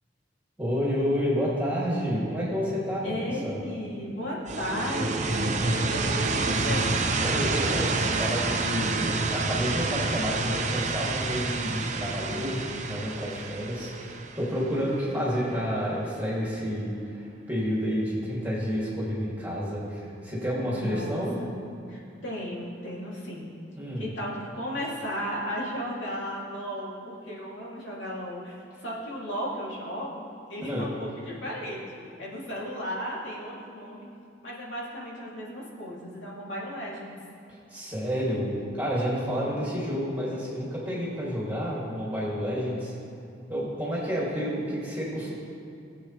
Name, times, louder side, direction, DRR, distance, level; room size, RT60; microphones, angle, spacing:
voice 1, 0.6-3.6 7.2-21.4 23.8-24.1 30.6-30.9 37.7-42.9 43.5-45.3, equal, 10° right, -7 dB, 2.7 m, -30 dB
voice 2, 3.0-7.0 20.6-21.5 21.9-23.5 24.0-28.6 28.8-34.1 34.4-37.1 39.4-39.9, equal, 80° left, -6 dB, 2.8 m, -35 dB
sound 1, 4.5-15.2, right 3 dB, 40° right, 0.6 m, -28 dB
18.5 x 7.9 x 3.3 m, 2.5 s
head